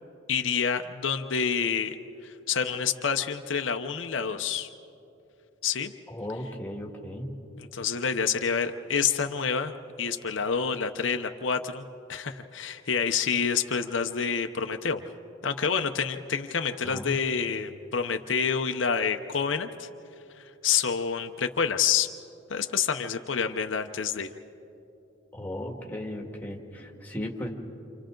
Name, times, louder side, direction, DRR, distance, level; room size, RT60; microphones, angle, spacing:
voice 1, 0.3-1.9 2.2-4.7 5.6-5.9 7.6-11.8 12.1-15.0 15.4-19.9 20.4-22.1 22.5-24.3, left 6 dB, 80° left, 6 dB, 0.8 m, -28 dB
voice 2, 6.1-7.3 16.8-17.2 25.3-27.5, left 1 dB, 10° left, 1 dB, 1.9 m, -36 dB
29.0 x 27.0 x 3.9 m, 2.9 s
head